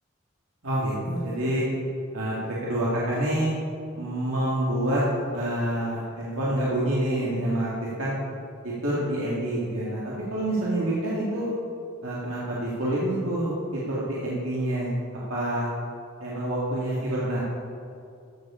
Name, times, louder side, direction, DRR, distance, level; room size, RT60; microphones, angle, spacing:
voice 1, 0.6-1.6 2.1-3.5 3.9-5.0 5.3-7.7 8.0-8.1 8.6-11.5 12.0-14.9 15.3-15.7 16.2-17.4, right 1 dB, 85° right, -7 dB, 2.1 m, -27 dB
14.5 x 7.5 x 5.0 m, 2.5 s
head